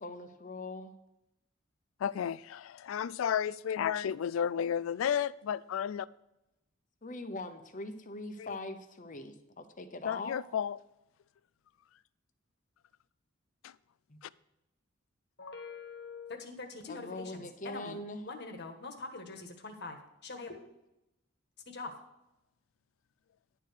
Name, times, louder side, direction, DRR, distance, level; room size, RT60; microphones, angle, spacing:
voice 1, 0.0-0.9 7.0-10.4 14.1-14.2 16.9-18.3, left 2 dB, 40° left, 0.8 m, -42 dB
voice 2, 2.0-6.1 8.4-8.5 10.0-10.8 13.6-13.7 14.2-14.3, left 8 dB, 85° left, 0.3 m, -32 dB
voice 3, 15.4-17.3 17.6-18.0 18.2-20.0 20.2-20.7 21.7-21.9, left 3 dB, 60° left, 1.4 m, -43 dB
11.0 x 4.8 x 6.5 m
head